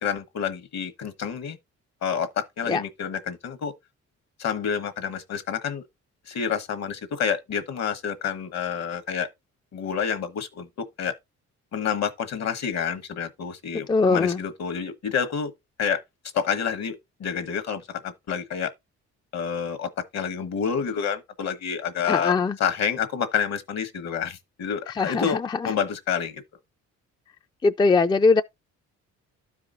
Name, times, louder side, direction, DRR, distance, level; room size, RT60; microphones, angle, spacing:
voice 1, 0.0-1.6 2.0-3.7 4.4-5.8 6.3-9.3 9.7-11.2 11.7-15.5 15.8-16.0 16.3-18.7 19.3-22.3 22.6-26.4, left 7 dB, 60° left, 1.2 m, -28 dB
voice 2, 13.9-14.4 22.1-22.6 24.9-25.7 27.6-28.4, left 4 dB, 15° left, 0.4 m, -21 dB
12.5 x 4.8 x 2.5 m
cardioid pair, 90°, 30 cm